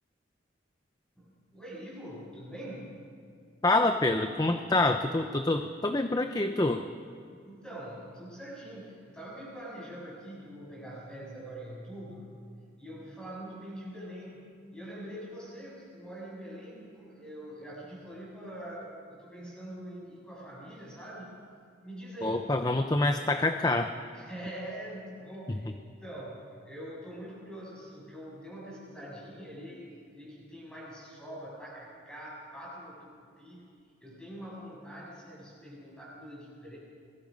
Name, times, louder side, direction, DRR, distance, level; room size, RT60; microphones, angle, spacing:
voice 1, 1.2-3.1 7.4-12.4 12.8-21.4 21.8-22.5 22.8-22.9 24.1-33.7 34.0-36.8, equal, 5° left, -5 dB, 7.8 m, -44 dB
voice 2, 3.6-6.8 22.2-23.9, left 2 dB, 20° left, 7 dB, 0.7 m, -26 dB
27.0 x 21.0 x 5.4 m, 2.3 s
head